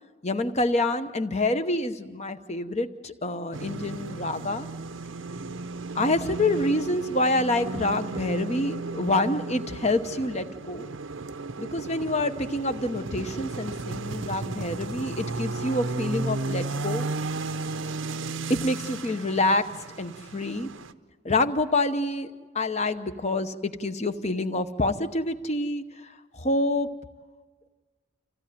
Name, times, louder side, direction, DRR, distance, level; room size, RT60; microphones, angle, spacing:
voice 1, 0.2-4.7 5.9-10.9 11.6-17.1 18.5-20.7 21.2-26.9, left 2 dB, 35° left, 10 dB, 0.9 m, -27 dB
sound 1, 3.5-20.9, right 3 dB, 75° right, 0.7 m, -34 dB
27.0 x 16.0 x 9.4 m, 1.4 s
head